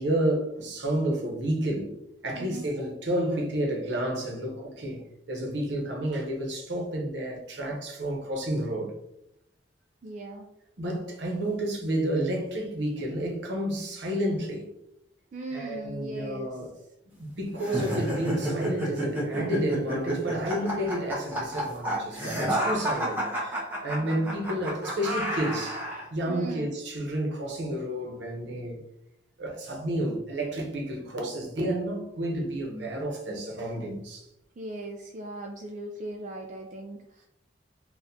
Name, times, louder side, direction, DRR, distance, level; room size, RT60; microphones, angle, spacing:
voice 1, 0.0-1.9 2.2-5.0 5.3-8.9 10.8-14.7 15.5-16.7 17.1-28.8 29.4-34.3, right 1 dB, 70° right, 0.9 m, -30 dB
voice 2, 2.3-2.7 10.0-10.5 15.3-16.6 23.0-23.1 23.9-24.4 26.3-26.7 34.6-37.3, right 2 dB, 40° right, 0.4 m, -39 dB
sound 1, 17.6-26.0, right 1 dB, 10° right, 0.8 m, -30 dB
4.2 x 2.3 x 2.7 m
head